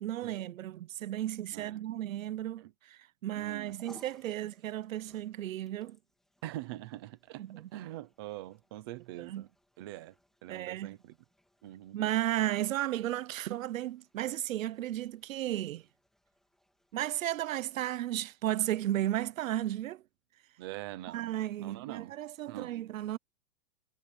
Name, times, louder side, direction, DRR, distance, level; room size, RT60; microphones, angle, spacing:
voice 1, 0.0-6.0 7.4-7.7 9.2-9.5 10.5-11.0 11.9-15.8 16.9-20.0 21.1-23.2, right 13 dB, 65° right, 0.8 m, -34 dB
voice 2, 1.5-1.8 2.6-2.7 3.3-3.7 6.4-7.5 7.7-9.5 9.8-10.2 10.4-11.1 11.6-12.0 12.4-12.5 20.6-22.2 22.5-22.7, right 15 dB, 15° right, 0.6 m, -44 dB
sound 1, 3.4-19.9, left 1 dB, ahead, 2.9 m, -66 dB
supercardioid pair, 180°, 43 cm